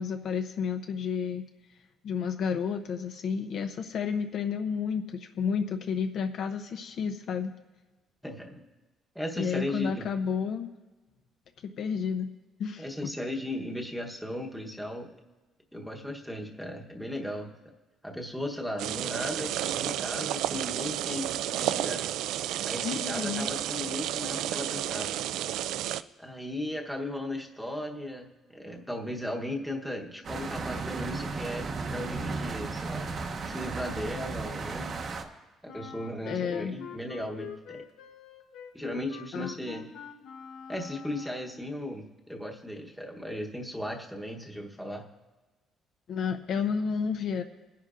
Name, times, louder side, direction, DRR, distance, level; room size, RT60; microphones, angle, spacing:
voice 1, 0.0-1.4 2.0-7.5 9.4-10.7 11.6-12.3 12.6-13.1 22.8-23.5 36.3-36.7 39.3-39.5 46.1-47.4, left 6 dB, 50° left, 7 dB, 0.5 m, -31 dB
voice 2, 8.2-8.7 9.1-10.1 12.8-15.1 15.7-17.5 18.0-22.1 22.6-25.2 26.2-33.1 33.5-35.0 35.6-37.8 38.7-39.8 40.7-45.0, left 1 dB, ahead, 0 dB, 1.0 m, -36 dB
sound 1, 18.8-26.0, right 12 dB, 75° right, 0.3 m, -31 dB
sound 2, 30.2-35.2, right 4 dB, 35° right, 0.8 m, -35 dB
Wind instrument woodwind instrument, 35.7-41.7, left 7 dB, 80° left, 0.9 m, -45 dB
22.0 x 10.0 x 2.5 m, 1.2 s
cardioid pair, 175°, 0 cm